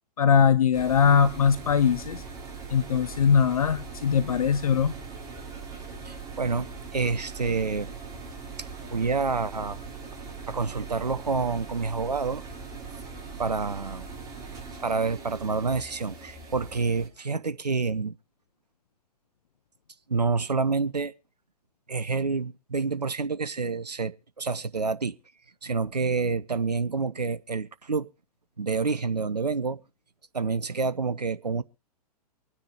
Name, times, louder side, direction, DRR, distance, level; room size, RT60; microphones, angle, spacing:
voice 1, 0.2-2.2 2.7-4.9, left 7 dB, 60° left, 0.8 m, -21 dB
sound 1, 0.7-17.1, right 4 dB, 20° right, 4.8 m, -41 dB
voice 2, 6.0-7.9 8.6-9.8 10.5-12.4 13.4-14.1 14.8-18.2 20.1-21.1 21.9-25.1 25.6-28.1 28.6-29.8 30.3-31.6, right 4 dB, 80° right, 0.6 m, -28 dB
24.0 x 9.8 x 2.8 m
figure-of-eight pair, 110°, 21 cm